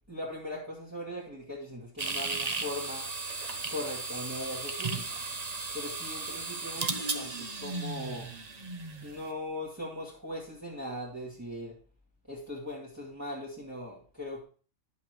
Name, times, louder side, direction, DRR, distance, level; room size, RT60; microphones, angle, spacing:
voice 1, 0.1-3.0 3.7-5.0 5.7-8.3 9.0-11.7 12.3-14.4, left 1 dB, 10° right, -6 dB, 2.3 m, -39 dB
sound 1, 2.0-9.2, right 3 dB, 35° right, 0.9 m, -35 dB
11.0 x 7.2 x 3.1 m, 0.39 s
omnidirectional pair, 1.4 m